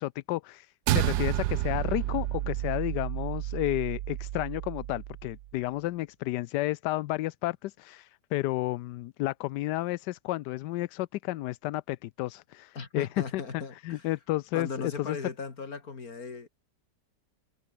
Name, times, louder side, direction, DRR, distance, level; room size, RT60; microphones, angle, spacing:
voice 1, 0.0-15.2, left 17 dB, 75° left, 1.1 m, -32 dB
sound 1, 0.9-5.4, right 14 dB, 70° right, 1.2 m, -31 dB
voice 2, 12.7-14.1 14.5-16.5, left 4 dB, 55° left, 3.1 m, -38 dB
omnidirectional pair, 1.9 m